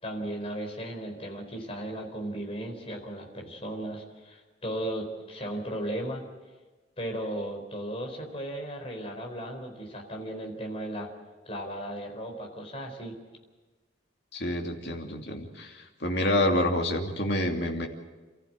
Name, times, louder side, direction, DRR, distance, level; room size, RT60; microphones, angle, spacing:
voice 1, 0.0-6.3 7.0-11.1 11.5-13.2, right 1 dB, 30° left, 2 dB, 4.3 m, -36 dB
voice 2, 14.3-17.9, left 1 dB, 60° left, 2 dB, 2.8 m, -28 dB
28.5 x 14.5 x 7.6 m, 1.3 s
head